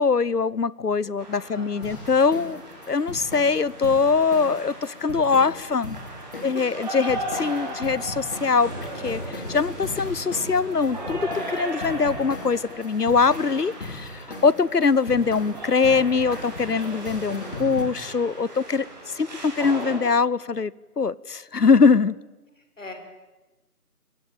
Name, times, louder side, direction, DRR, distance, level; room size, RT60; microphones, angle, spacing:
voice 1, 0.0-2.6 2.9-6.0 6.4-8.7 9.0-22.2, left 5 dB, 80° left, 22 dB, 1.1 m, -22 dB
sound 1, 1.2-20.0, right 1 dB, 25° right, 7.5 m, -37 dB
voice 2, 1.5-2.0 6.4-6.7 22.6-22.9, left 3 dB, 55° left, 5 dB, 6.5 m, -42 dB
sound 2, 1.8-17.8, left 2 dB, 35° left, 3.0 m, -39 dB
28.5 x 21.5 x 9.0 m, 1.1 s
figure-of-eight pair, 165°, 47 cm